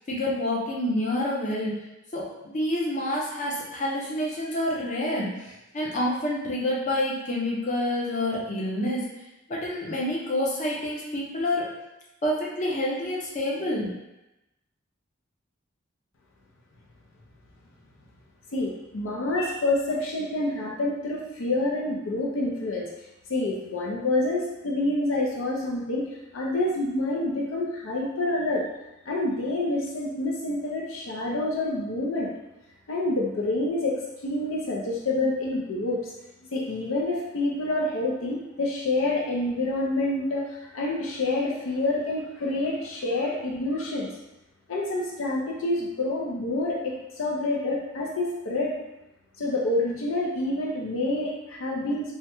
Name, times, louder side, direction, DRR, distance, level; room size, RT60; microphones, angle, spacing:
voice 1, 0.1-1.8 2.1-9.0 9.5-11.7 12.2-13.9, left 1 dB, 40° left, -4 dB, 0.7 m, -28 dB
voice 2, 18.5-22.9 23.3-26.0 26.3-28.6 29.1-32.3 32.9-33.9 34.2-36.0 36.5-40.5 40.7-44.1 44.7-48.7 49.4-52.1, left 2 dB, 80° left, -2 dB, 0.5 m, -27 dB
3.5 x 2.1 x 2.9 m, 0.95 s
head